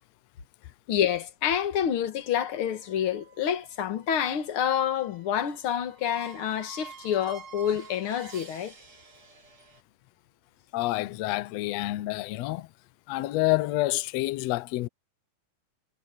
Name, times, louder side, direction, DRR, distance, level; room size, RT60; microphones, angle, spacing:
voice 1, 0.9-8.7, left 9 dB, 50° left, 2.0 m, -28 dB
sound 1, 2.1-9.8, right 6 dB, 60° right, 5.0 m, -50 dB
voice 2, 10.7-12.7 13.1-14.9, left 18 dB, 75° left, 1.7 m, -28 dB
omnidirectional pair, 3.5 m